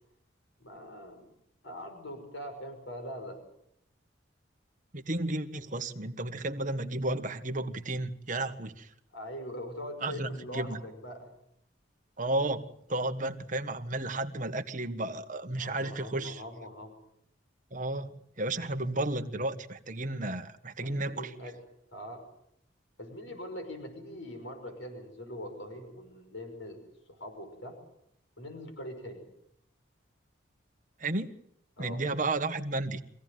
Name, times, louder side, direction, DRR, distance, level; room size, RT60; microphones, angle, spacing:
voice 1, 0.6-1.3 1.6-3.4 9.1-11.3 15.6-17.0 20.8-21.5 21.9-22.2 23.0-26.8 27.1-27.8 28.4-29.2 31.8-32.0, equal, 75° left, 5 dB, 5.9 m, -42 dB
voice 2, 4.9-8.9 10.0-10.8 12.2-16.4 17.7-21.3 31.0-31.3 31.8-33.0, right 2 dB, 40° right, 6 dB, 1.6 m, -33 dB
25.0 x 16.5 x 9.4 m, 0.74 s
head